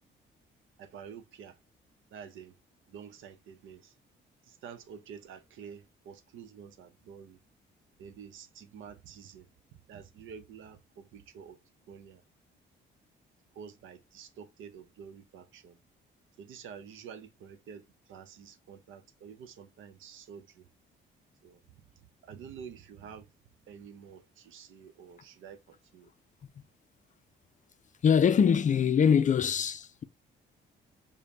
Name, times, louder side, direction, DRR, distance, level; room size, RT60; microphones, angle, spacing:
voice 1, 0.8-1.6 2.1-2.6 2.9-3.9 4.4-7.4 8.0-9.5 9.9-11.6 11.9-12.2 13.5-15.8 16.4-20.7 21.4-21.8 22.2-23.3 23.7-26.1, right 7 dB, 80° right, 0.7 m, -49 dB
voice 2, 28.0-30.0, left 7 dB, 40° left, 0.4 m, -23 dB
5.0 x 2.2 x 2.7 m
cardioid pair, 90°, 20 cm